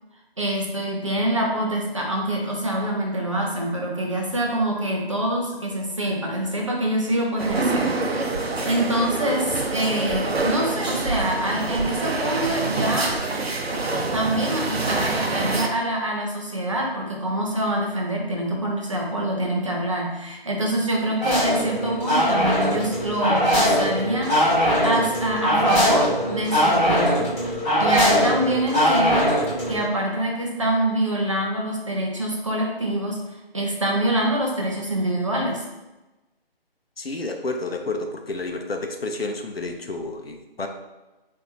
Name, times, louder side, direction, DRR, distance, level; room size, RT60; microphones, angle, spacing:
voice 1, 0.4-7.9 8.7-13.2 14.1-27.3 27.8-29.4 29.7-35.6, right 1 dB, 30° right, -1 dB, 0.6 m, -25 dB
sound 1, 7.4-15.7, right 3 dB, 80° right, 0.7 m, -26 dB
sound 2, 21.2-29.8, equal, 15° left, 1.2 m, -21 dB
voice 2, 37.0-40.7, left 2 dB, 75° left, 4 dB, 0.7 m, -30 dB
6.2 x 2.8 x 2.9 m, 1.1 s
figure-of-eight pair, 155°, 30 cm